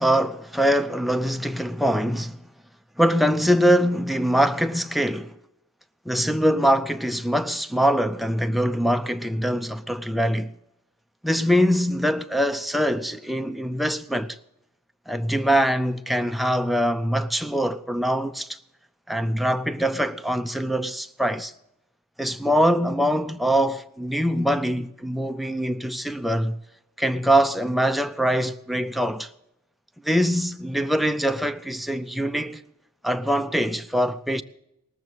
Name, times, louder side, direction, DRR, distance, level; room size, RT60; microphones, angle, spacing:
voice 1, 0.0-2.4 3.0-5.4 6.1-10.5 11.2-14.4 15.1-18.6 19.1-21.5 22.2-26.6 27.0-29.3 30.0-32.6 33.0-34.4, equal, ahead, 0.4 m, -23 dB
19.0 x 7.6 x 8.2 m
head